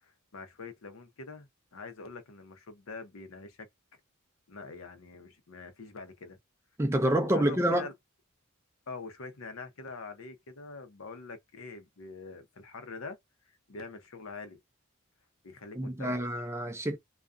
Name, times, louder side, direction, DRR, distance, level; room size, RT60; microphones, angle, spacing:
voice 1, 0.0-3.7 4.5-6.4 7.3-7.9 8.9-13.2 13.7-14.6 15.4-16.2, left 4 dB, 70° left, 0.7 m, -44 dB
voice 2, 6.8-7.9 15.8-17.0, right 1 dB, 10° right, 0.4 m, -27 dB
2.4 x 2.2 x 2.4 m
head